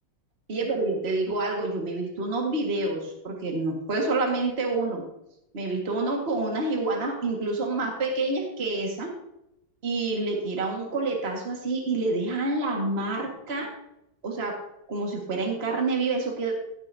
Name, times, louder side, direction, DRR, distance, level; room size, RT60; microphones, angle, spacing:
voice 1, 0.5-5.0 5.5-9.1 9.8-13.7 14.2-14.5 14.9-16.5, right 3 dB, 35° right, 0 dB, 2.0 m, -28 dB
16.5 x 9.7 x 2.8 m, 0.83 s
omnidirectional pair, 1.9 m